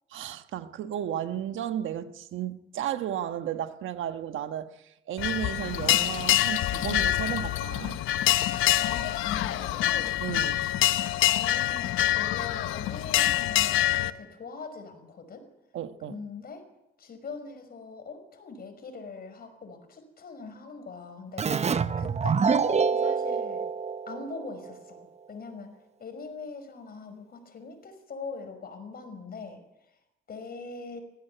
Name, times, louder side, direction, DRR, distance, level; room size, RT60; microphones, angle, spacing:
voice 1, 0.1-8.0 10.2-10.6 15.7-16.2, right 10 dB, 80° right, 1.3 m, -34 dB
sound 1, 5.2-14.1, left 14 dB, 90° left, 0.9 m, -26 dB
voice 2, 8.8-10.1 11.3-15.4 16.1-16.6 17.0-23.7 24.1-25.7 26.0-29.6 30.3-31.0, left 4 dB, 50° left, 5.6 m, -41 dB
Keyboard (musical), 21.4-24.8, right 6 dB, 35° right, 0.8 m, -26 dB
19.0 x 16.0 x 9.3 m
cardioid pair, 90°, 20 cm